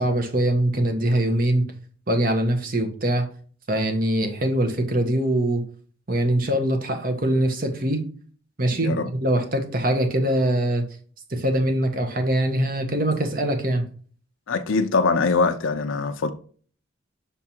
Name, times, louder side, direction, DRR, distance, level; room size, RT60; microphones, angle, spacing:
voice 1, 0.0-1.7 2.1-3.3 3.7-5.6 6.1-8.0 8.6-10.8 11.3-13.8, right 1 dB, 45° right, 1.3 m, -23 dB
voice 2, 14.5-16.3, left 4 dB, 85° left, 0.6 m, -22 dB
7.0 x 3.6 x 4.4 m
head